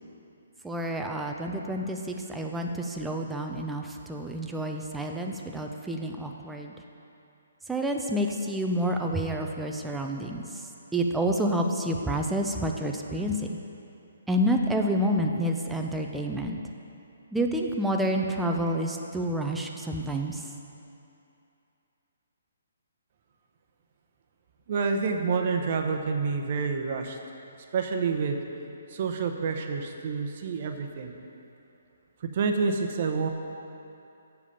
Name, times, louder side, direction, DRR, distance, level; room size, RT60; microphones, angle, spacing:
voice 1, 0.6-6.7 7.7-10.6 10.9-13.5 14.3-16.6 17.3-20.4, equal, 5° right, 2 dB, 0.6 m, -29 dB
voice 2, 24.7-27.2 27.7-28.4 28.9-31.1 32.2-33.3, right 5 dB, 45° right, 4 dB, 0.9 m, -28 dB
7.4 x 7.0 x 6.8 m, 2.7 s
hypercardioid pair, 145°, 0 cm